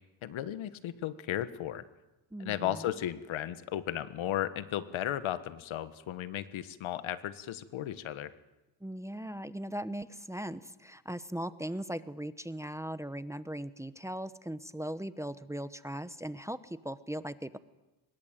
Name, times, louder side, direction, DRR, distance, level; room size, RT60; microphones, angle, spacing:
voice 1, 0.2-1.8 2.4-8.3, left 12 dB, 70° left, 13 dB, 1.6 m, -35 dB
voice 2, 2.3-2.8 8.8-17.6, right 1 dB, 5° right, 13 dB, 1.0 m, -39 dB
24.5 x 22.0 x 9.2 m, 1.0 s
cardioid pair, 95°, 48 cm